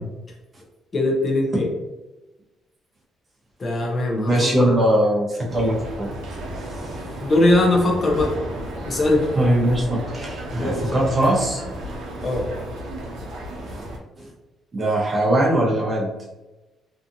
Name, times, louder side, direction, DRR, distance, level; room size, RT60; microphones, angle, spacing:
voice 1, 0.9-1.7 3.6-4.8 7.2-8.4 8.9-9.3 10.6-11.0 12.2-12.5, left 2 dB, 35° left, 0 dB, 0.5 m, -21 dB
voice 2, 4.3-6.1 6.6-7.1 9.4-11.6 13.7-13.8 14.2-14.3 14.7-16.1, right 1 dB, 25° right, -3 dB, 0.8 m, -21 dB
sound 1, 5.5-14.0, right 1 dB, 90° right, 0.6 m, -33 dB
2.6 x 2.4 x 2.6 m, 1.1 s
cardioid pair, 145°, 0 cm